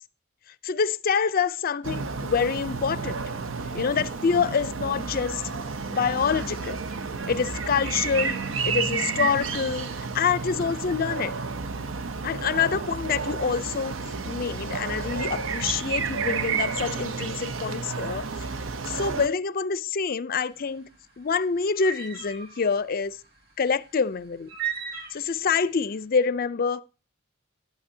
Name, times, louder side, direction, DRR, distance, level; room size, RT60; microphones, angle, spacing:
voice 1, 0.6-3.2 3.7-5.4 5.9-6.8 7.3-11.4 12.2-14.0 14.3-18.3 18.9-20.9 21.2-23.2 23.6-24.5 25.1-26.8, left 6 dB, 50° left, 0.5 m, -26 dB
sound 1, 1.8-19.3, right 5 dB, 85° right, 0.7 m, -31 dB
sound 2, 20.5-25.9, right 8 dB, 55° right, 2.6 m, -37 dB
11.5 x 10.5 x 2.7 m
head